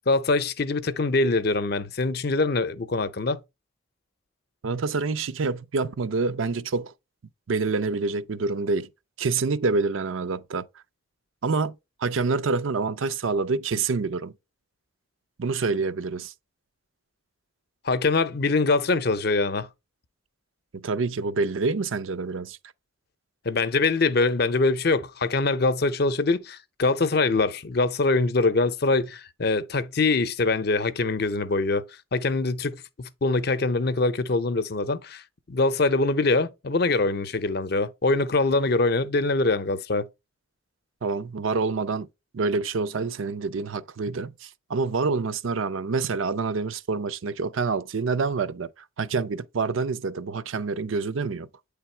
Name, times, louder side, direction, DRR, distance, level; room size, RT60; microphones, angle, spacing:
voice 1, 0.0-3.4 17.8-19.7 23.4-31.8 32.1-35.2 35.5-40.1, left 3 dB, 50° left, 0.6 m, -23 dB
voice 2, 4.6-6.9 7.5-8.9 9.2-10.7 11.4-11.7 12.0-14.3 15.4-16.3 20.7-22.6 41.0-42.1 42.3-51.5, right 4 dB, 75° right, 0.5 m, -27 dB
8.9 x 3.4 x 4.4 m
head